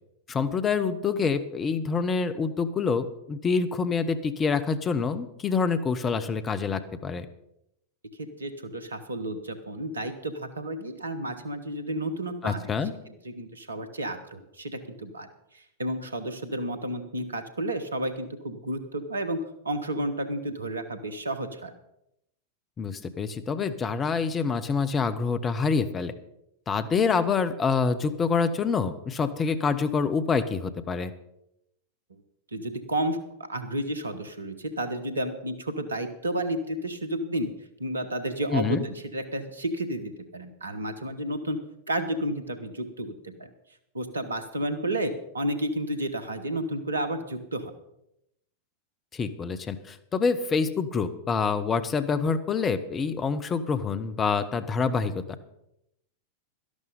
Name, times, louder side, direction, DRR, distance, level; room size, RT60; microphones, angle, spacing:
voice 1, 0.3-7.3 12.4-12.9 22.8-26.1 26.7-31.1 38.5-38.8 49.1-55.1, left 5 dB, 20° left, 11 dB, 0.9 m, -26 dB
voice 2, 8.2-12.7 13.2-15.3 15.5-21.7 32.5-33.2 33.5-37.5 37.8-41.6 41.9-43.5 43.9-47.7, right 1 dB, 75° right, 10 dB, 1.3 m, -31 dB
12.5 x 11.5 x 5.3 m, 0.82 s
figure-of-eight pair, 90°, 0 cm